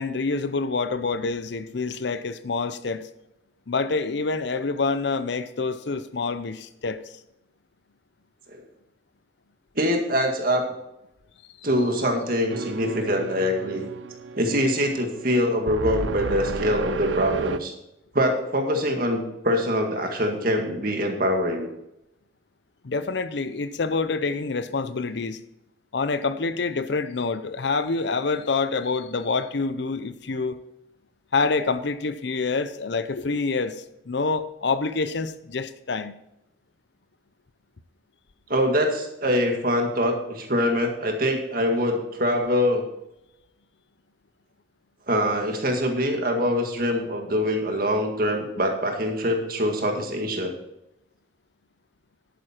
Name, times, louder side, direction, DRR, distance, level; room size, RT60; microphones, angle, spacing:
voice 1, 0.0-3.1 3.7-7.0 22.8-25.4 25.9-30.6 31.3-36.1, left 4 dB, 60° left, 0.6 m, -27 dB
voice 2, 9.8-10.6 11.6-13.8 14.4-17.7 18.1-21.7 38.5-42.8 45.1-50.5, equal, 45° right, 2.0 m, -24 dB
sound 1, 12.5-17.6, right 5 dB, 75° right, 0.5 m, -32 dB
11.0 x 9.1 x 4.5 m
head